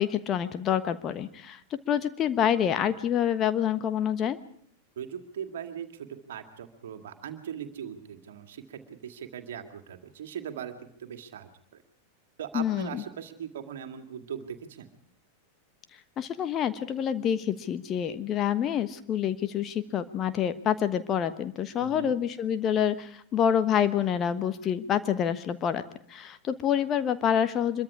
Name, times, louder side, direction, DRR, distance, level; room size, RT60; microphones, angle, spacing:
voice 1, 0.0-1.6 1.9-4.4 12.5-13.0 16.2-25.8 26.1-27.8, left 9 dB, 30° left, 11 dB, 1.3 m, -27 dB
voice 2, 5.0-10.7 11.0-11.8 12.4-14.9 21.8-22.2, right 8 dB, 60° right, 6 dB, 2.1 m, -40 dB
25.5 x 22.5 x 4.9 m, 0.62 s
figure-of-eight pair, 90°, 0 cm